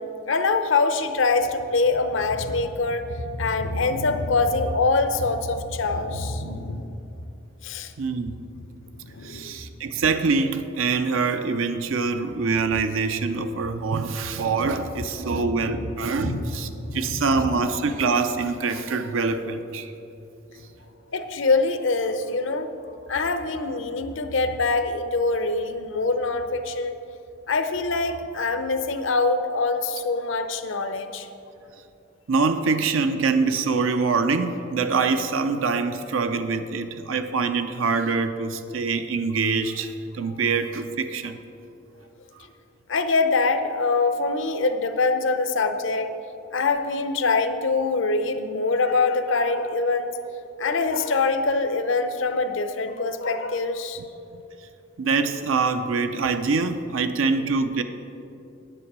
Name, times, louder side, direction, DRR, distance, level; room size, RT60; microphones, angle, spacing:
voice 1, 0.0-6.9 7.6-7.9 9.1-9.6 15.4-15.9 16.2-16.5 16.9-17.6 21.1-22.7 23.1-27.0 27.5-31.3 42.9-46.1 46.5-50.1 50.6-54.0, left 3 dB, 70° left, 9 dB, 0.7 m, -24 dB
voice 2, 8.0-8.4 9.2-19.9 25.1-25.2 32.3-41.4 42.3-42.5 55.0-57.8, right 4 dB, 85° right, 8 dB, 0.5 m, -24 dB
10.0 x 8.0 x 6.0 m, 2.8 s
head